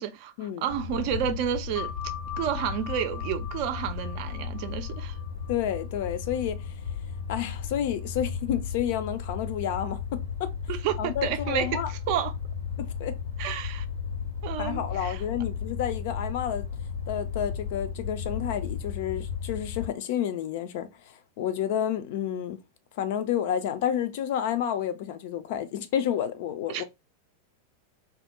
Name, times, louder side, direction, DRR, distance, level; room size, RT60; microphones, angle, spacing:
voice 1, 0.0-1.9 2.4-5.2 10.7-12.3 13.4-13.8 14.4-15.2 26.7-26.8, right 10 dB, 45° right, 0.4 m, -30 dB
sound 1, 0.7-19.9, left 6 dB, 75° left, 0.7 m, -35 dB
sound 2, 1.8-6.9, left 11 dB, 5° left, 0.6 m, -41 dB
voice 2, 5.5-6.7 7.3-10.5 11.0-11.9 12.8-13.2 14.6-16.6 17.1-20.9 21.4-22.6 23.0-26.8, left 9 dB, 50° left, 0.3 m, -30 dB
2.3 x 2.0 x 2.8 m
figure-of-eight pair, 90°, 0 cm